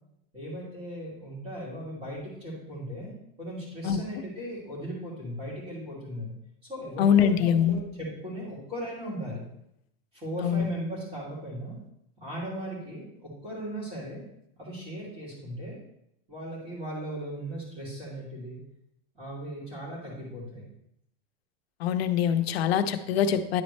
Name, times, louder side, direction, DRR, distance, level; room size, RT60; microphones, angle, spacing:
voice 1, 0.3-3.1 3.4-6.3 6.7-9.4 10.1-11.7 12.2-14.2 14.6-15.8 16.3-18.6 19.1-20.6, right 1 dB, 20° right, -7 dB, 2.8 m, -37 dB
voice 2, 7.0-7.8 10.4-10.6 21.8-23.6, left 8 dB, 90° left, 9 dB, 0.7 m, -23 dB
10.0 x 4.2 x 3.2 m, 0.79 s
supercardioid pair, 180°, 30 cm